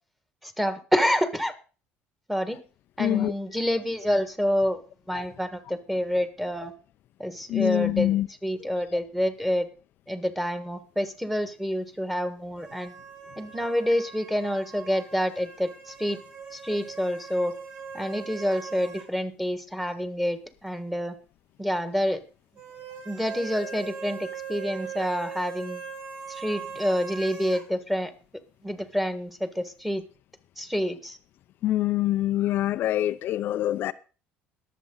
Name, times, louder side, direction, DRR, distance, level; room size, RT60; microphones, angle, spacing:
voice 1, 0.4-1.5 2.3-2.6 3.0-4.8 5.1-6.7 7.2-9.7 10.1-12.9 13.4-16.2 16.5-17.5 17.9-21.1 21.6-22.2 23.0-25.8 26.3-28.1 28.6-30.0 30.6-31.2, equal, 5° right, 1.6 m, -28 dB
voice 2, 3.0-3.3 5.1-5.2 7.5-8.3 31.6-33.9, left 14 dB, 55° left, 0.5 m, -25 dB
sound 1, 12.6-19.1 19.4-19.5 22.6-27.7, right 6 dB, 45° right, 4.3 m, -40 dB
21.0 x 7.5 x 3.9 m
cardioid pair, 120°, 4 cm